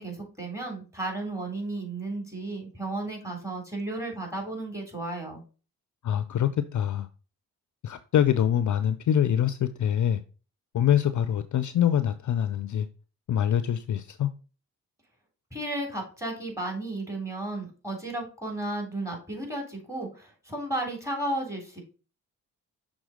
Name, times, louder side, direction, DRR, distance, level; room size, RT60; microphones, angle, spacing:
voice 1, 0.0-5.4 15.5-21.8, right 2 dB, 5° right, 3.5 m, -33 dB
voice 2, 6.0-7.1 7.8-10.2 10.7-12.9 13.3-14.3, left 10 dB, 50° left, 0.5 m, -24 dB
6.1 x 3.7 x 5.0 m
hypercardioid pair, 40°, 41 cm